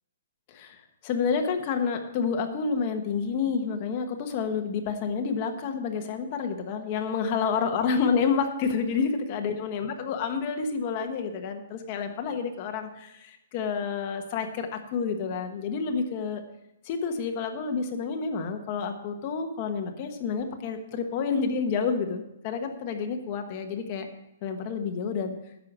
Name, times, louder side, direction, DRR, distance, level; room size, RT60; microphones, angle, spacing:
voice 1, 0.5-16.4 16.8-24.1 24.4-25.3, left 5 dB, 30° left, 5 dB, 1.2 m, -29 dB
10.5 x 6.5 x 7.3 m, 0.87 s
hypercardioid pair, 170°, 0 cm